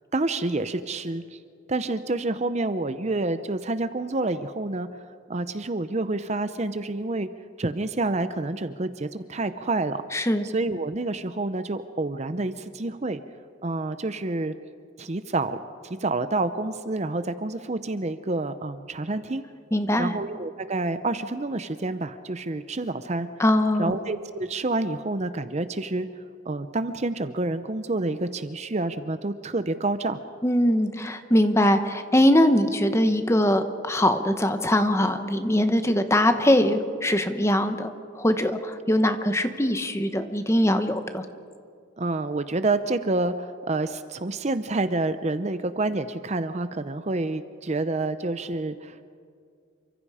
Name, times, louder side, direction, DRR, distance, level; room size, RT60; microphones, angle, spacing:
voice 1, 0.1-1.4 1.7-4.9 5.3-7.3 7.6-10.0 10.4-13.2 13.6-14.6 15.0-15.6 15.8-19.4 20.0-23.3 23.8-26.1 26.5-30.2 42.0-49.0, right 2 dB, 35° right, 11 dB, 0.6 m, -28 dB
voice 2, 10.1-10.4 19.7-20.1 23.4-23.9 30.4-41.2, left 1 dB, 15° left, 8 dB, 1.1 m, -22 dB
28.5 x 25.0 x 4.9 m, 2.3 s
head